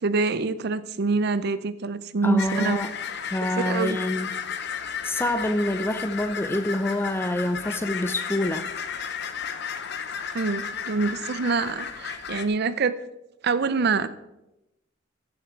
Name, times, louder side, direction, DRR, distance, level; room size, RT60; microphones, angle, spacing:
voice 1, 0.0-2.9 3.6-4.0 10.3-13.0 13.4-14.1, right 4 dB, 55° right, 14 dB, 0.5 m, -25 dB
voice 2, 2.2-2.9 3.3-4.3 5.0-8.7, left 1 dB, 10° left, 10 dB, 0.5 m, -26 dB
sound 1, 2.4-12.5, left 7 dB, 55° left, 0.8 m, -33 dB
14.5 x 7.3 x 4.4 m, 0.92 s
head